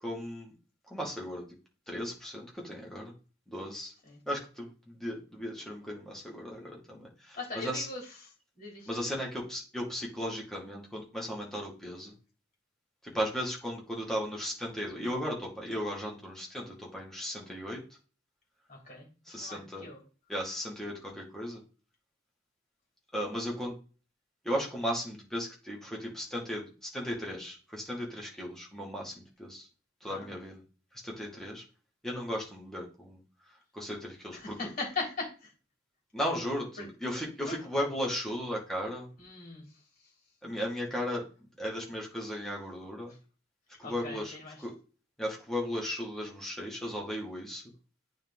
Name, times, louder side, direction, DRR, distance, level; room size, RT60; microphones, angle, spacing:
voice 1, 0.0-0.5 0.9-1.4 1.9-3.1 3.5-3.9 4.3-7.9 8.9-12.1 13.0-17.8 19.3-19.9 20.3-21.6 23.1-23.7 24.4-29.7 30.0-30.6 31.0-31.6 32.0-33.2 33.7-34.6 36.1-39.1 40.4-41.2 41.6-43.1 43.8-44.7 45.2-47.6, equal, ahead, -2 dB, 2.1 m, -36 dB
voice 2, 7.3-8.0 8.6-8.9 18.7-19.0 19.3-20.0 30.1-30.3 34.3-35.3 36.8-36.9 37.5-37.6 39.2-39.6 43.8-44.6, left 3 dB, 40° left, -3 dB, 3.2 m, -39 dB
9.0 x 3.7 x 3.7 m, 0.35 s
head